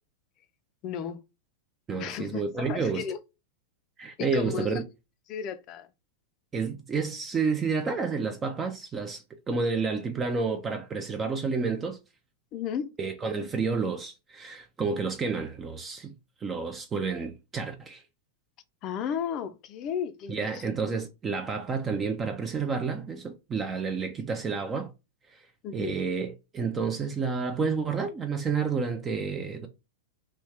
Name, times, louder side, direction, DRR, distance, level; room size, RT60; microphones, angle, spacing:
voice 1, 0.8-1.2 2.0-3.2 4.2-4.8 5.3-5.9 12.5-12.9 18.8-20.6 25.6-26.0, left 8 dB, 40° left, 0.5 m, -34 dB
voice 2, 1.9-3.1 4.0-4.8 6.5-12.0 13.0-18.0 20.3-24.9 25.3-25.5 25.7-29.7, right 5 dB, 20° right, 0.5 m, -30 dB
3.0 x 2.3 x 3.2 m
hypercardioid pair, 125°, 0 cm